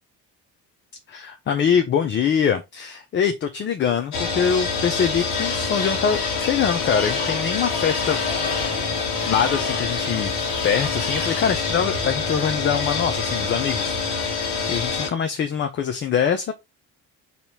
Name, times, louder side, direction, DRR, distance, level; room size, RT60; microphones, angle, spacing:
voice 1, 1.1-8.2 9.3-10.3 10.6-16.5, left 7 dB, 25° left, 0.4 m, -23 dB
sound 1, 4.1-15.1, left 4 dB, 50° left, 1.4 m, -25 dB
4.1 x 2.7 x 4.4 m
figure-of-eight pair, 45°, 49 cm